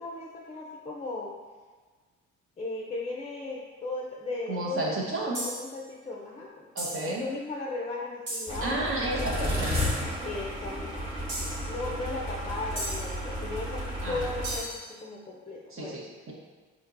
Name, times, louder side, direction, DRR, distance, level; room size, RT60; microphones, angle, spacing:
voice 1, 0.0-1.4 2.6-4.8 5.4-6.7 7.0-9.8 10.2-11.1 11.7-16.1, left 2 dB, 20° left, -3 dB, 0.5 m, -36 dB
voice 2, 4.5-5.4 6.7-7.2 8.6-10.1 14.0-14.3 15.7-16.0, right 2 dB, 45° right, -3 dB, 0.9 m, -32 dB
sound 1, 5.3-5.7 6.8-7.1 8.3-8.6 9.7-10.1 11.3-11.6 12.8-13.2 14.4-14.9, right 1 dB, 65° right, 1.5 m, -35 dB
sound 2, 8.5-14.6, equal, 15° right, 1.2 m, -33 dB
4.2 x 2.9 x 2.5 m, 1.4 s
cardioid pair, 90°, 30 cm